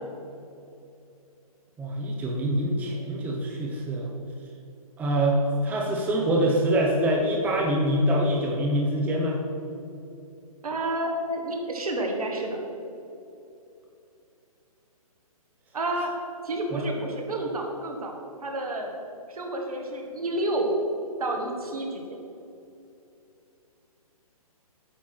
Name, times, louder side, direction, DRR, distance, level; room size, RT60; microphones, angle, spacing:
voice 1, 1.8-4.1 5.0-9.4 16.7-16.8, right 1 dB, 10° right, -1 dB, 0.6 m, -25 dB
voice 2, 10.6-12.6 15.7-16.1 16.4-18.1 18.4-18.9 19.3-20.7 21.2-22.2, right 1 dB, 70° right, 2 dB, 1.6 m, -30 dB
8.8 x 4.6 x 5.9 m, 2.7 s
figure-of-eight pair, 135°, 19 cm